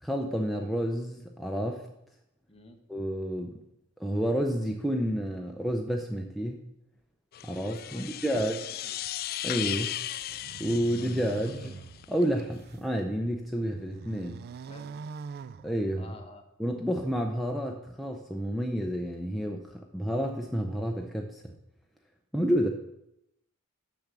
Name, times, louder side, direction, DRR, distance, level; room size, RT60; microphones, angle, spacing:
voice 1, 0.0-1.8 2.9-3.6 4.0-6.6 7.4-8.6 9.4-10.0 10.6-11.8 12.1-14.4 15.6-16.1 16.6-21.5 22.3-22.7, equal, ahead, 1 dB, 0.6 m, -30 dB
voice 2, 2.5-2.8 7.9-8.4 8.8-8.9 14.7-15.0 15.9-16.5, left 2 dB, 25° left, 5 dB, 1.1 m, -49 dB
sound 1, 7.3-12.1, left 12 dB, 45° left, 0.3 m, -36 dB
sound 2, 10.3-12.9 13.4-16.2, right 5 dB, 45° right, 0.3 m, -44 dB
7.1 x 6.1 x 6.8 m, 0.82 s
head